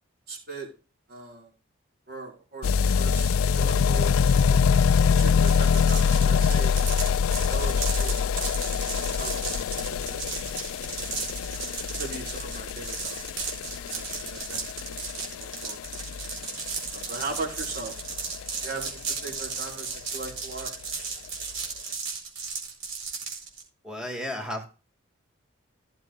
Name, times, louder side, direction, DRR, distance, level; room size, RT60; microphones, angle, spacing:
voice 1, 0.3-0.7 1.1-1.5 2.1-4.6 5.1-6.8 7.5-8.5 8.9-9.4 9.8-10.2 11.9-13.5 13.8-15.8 16.9-17.9 18.6-20.7, right 4 dB, 50° right, -3 dB, 5.5 m, -39 dB
sound 1, 2.6-19.4 19.7-19.8 20.0-20.1 20.3-20.4 20.6-20.7 21.4-21.5, left 6 dB, 85° left, 0.4 m, -25 dB
sound 2, 5.4-23.6, right 5 dB, 65° right, 4.3 m, -35 dB
voice 2, 23.8-24.7, left 1 dB, 5° right, 2 dB, 2.3 m, -33 dB
16.0 x 7.4 x 2.5 m, 0.34 s
head